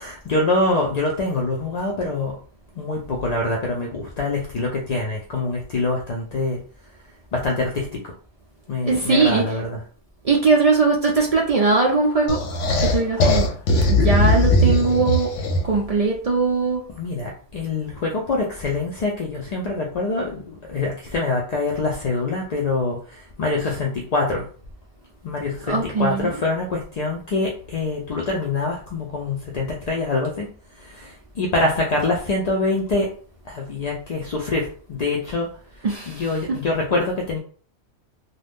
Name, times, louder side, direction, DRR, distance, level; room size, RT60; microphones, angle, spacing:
voice 1, 0.0-2.4 2.8-6.6 7.3-8.1 8.7-9.8 17.0-24.5 25.2-30.5 30.8-33.1 33.5-35.5 35.8-37.4, left 2 dB, 55° left, -1 dB, 0.5 m, -25 dB
voice 2, 8.8-9.5 10.2-12.4 12.8-13.5 13.9-15.3 15.6-16.8 25.7-26.3 35.8-36.6, right 3 dB, 70° right, -1 dB, 0.3 m, -20 dB
sound 1, 12.3-15.8, left 1 dB, 80° left, 1.0 m, -19 dB
2.6 x 2.3 x 3.4 m, 0.42 s
omnidirectional pair, 1.2 m